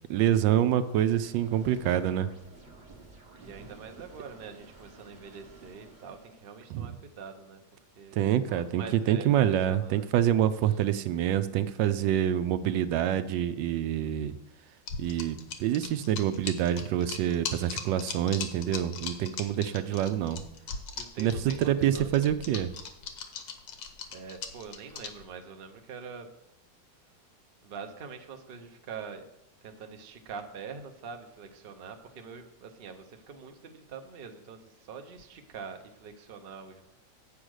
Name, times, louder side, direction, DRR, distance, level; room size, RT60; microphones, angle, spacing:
voice 1, 0.1-2.3 6.7-6.9 8.1-14.4 15.0-20.4 21.2-22.7, right 11 dB, 80° right, 11 dB, 1.2 m, -26 dB
sound 1, 0.9-6.6, right 2 dB, 30° right, 1.1 m, -52 dB
voice 2, 3.3-7.6 8.0-8.2 8.5-10.1 10.6-10.8 17.5-17.8 19.3-19.6 20.9-22.1 24.1-26.3 27.6-29.3 29.6-36.8, right 5 dB, 55° right, 5 dB, 0.6 m, -44 dB
sound 2, 14.9-25.2, left 6 dB, 75° left, 1.6 m, -38 dB
8.3 x 5.0 x 6.2 m, 0.83 s
omnidirectional pair, 2.0 m